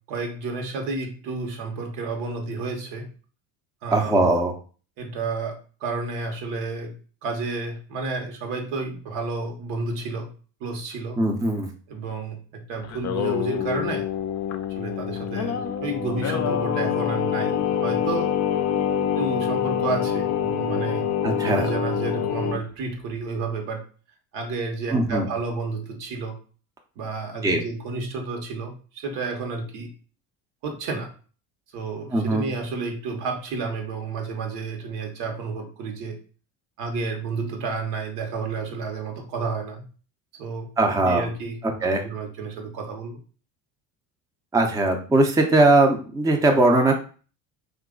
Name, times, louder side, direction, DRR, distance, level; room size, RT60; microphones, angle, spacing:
voice 1, 0.1-3.1 3.8-4.3 5.0-5.5 5.8-6.9 7.2-10.3 10.6-11.2 11.9-14.1 14.8-18.3 19.2-23.8 24.3-26.4 27.0-29.9 30.6-31.1 31.7-36.2 36.8-39.8 40.4-40.7 41.0-41.6 42.0-43.2, right 3 dB, 70° right, 3 dB, 1.1 m, -31 dB
voice 2, 3.9-4.5 11.2-11.7 21.2-21.7 24.9-25.3 27.4-27.6 32.1-32.5 40.8-41.3 41.6-42.0 44.5-47.0, right 2 dB, 10° right, 3 dB, 0.5 m, -20 dB
Singing, 12.8-22.6, left 8 dB, 40° left, 0.5 m, -26 dB
2.9 x 2.4 x 3.6 m, 0.39 s
supercardioid pair, 80°, 43 cm